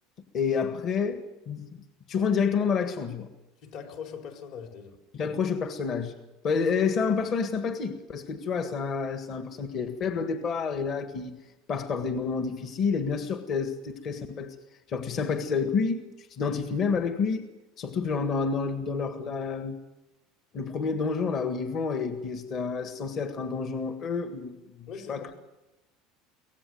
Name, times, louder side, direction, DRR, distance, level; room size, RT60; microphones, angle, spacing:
voice 1, 0.3-1.7 2.1-3.3 5.1-6.1 6.4-11.4 11.7-14.5 14.9-17.5 17.8-19.8 20.5-25.3, left 5 dB, 40° left, 7 dB, 1.7 m, -29 dB
voice 2, 3.6-5.0 24.9-25.3, left 6 dB, 55° left, 3 dB, 4.4 m, -41 dB
24.0 x 18.0 x 7.9 m, 1.0 s
cardioid pair, 145°, 0 cm